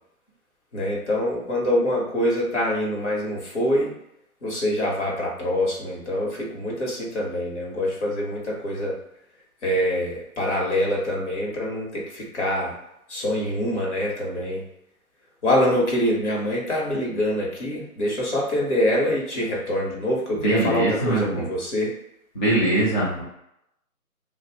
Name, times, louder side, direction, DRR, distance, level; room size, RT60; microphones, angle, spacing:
voice 1, 0.7-3.9 4.4-9.0 9.6-12.8 13.1-14.6 15.4-21.9, left 1 dB, 50° left, -4 dB, 1.2 m, -25 dB
voice 2, 20.4-21.5 22.3-23.2, right 1 dB, 35° left, -9 dB, 0.9 m, -22 dB
2.6 x 2.4 x 2.9 m, 0.79 s
hypercardioid pair, 160°, 43 cm